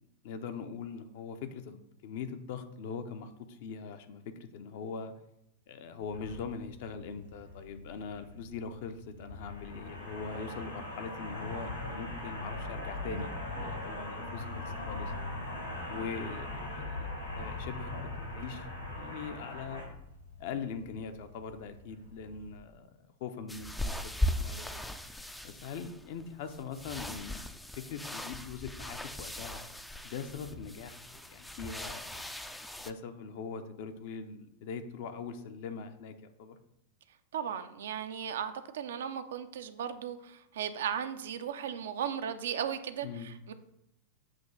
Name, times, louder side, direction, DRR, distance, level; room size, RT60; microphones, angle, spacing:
voice 1, 0.2-5.1 5.7-13.3 13.6-15.1 15.9-17.1 17.4-17.9 18.2-18.7 19.0-19.8 20.4-22.9 23.2-24.9 25.4-27.4 27.9-29.6 30.0-32.3 32.8-36.6 43.0-43.3, left 6 dB, 50° left, 8 dB, 0.7 m, -42 dB
sound 1, 6.0-22.6, left 2 dB, 80° left, 2.6 m, -41 dB
sound 2, 23.5-32.9, left 1 dB, 5° left, 0.4 m, -38 dB
voice 2, 37.3-43.5, right 8 dB, 60° right, 10 dB, 0.5 m, -36 dB
7.6 x 3.0 x 5.8 m, 0.83 s
figure-of-eight pair, 90°, 0 cm